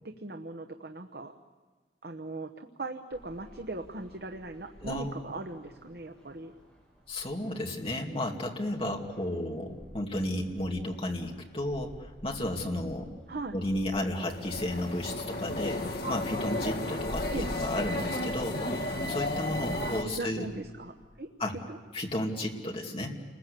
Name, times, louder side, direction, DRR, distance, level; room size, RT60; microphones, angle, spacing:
voice 1, 0.0-1.3 2.0-6.5 13.3-13.6 17.3-17.5 20.0-21.3 21.7-21.8, right 2 dB, 60° right, 5 dB, 1.0 m, -39 dB
sound 1, 3.1-21.1, equal, ahead, 7.3 m, -50 dB
voice 2, 4.8-5.1 7.1-13.1 13.5-20.5 21.4-21.6 21.9-23.1, left 1 dB, 30° left, 1 dB, 2.4 m, -33 dB
sound 2, 14.1-20.0, left 1 dB, 60° left, 1.9 m, -33 dB
29.5 x 20.5 x 8.4 m, 1.4 s
head